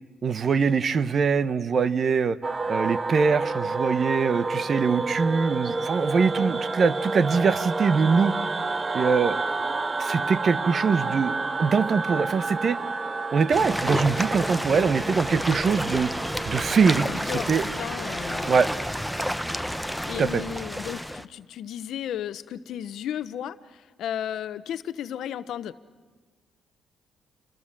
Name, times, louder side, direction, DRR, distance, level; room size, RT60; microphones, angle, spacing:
voice 1, 0.2-2.4 2.7-8.3 8.9-9.4 10.0-12.8 13.3-16.1 16.4-17.1 17.5-17.6 18.5-18.7 20.2-20.4, right 5 dB, 45° right, 15 dB, 1.0 m, -23 dB
sound 1, 2.4-17.1, right 3 dB, 30° right, 0.8 m, -30 dB
sound 2, 13.5-21.2, equal, ahead, 0.9 m, -30 dB
voice 2, 16.9-18.6 19.8-25.8, left 10 dB, 75° left, 14 dB, 0.9 m, -34 dB
28.5 x 25.0 x 7.5 m, 1.4 s
cardioid pair, 90°, 0 cm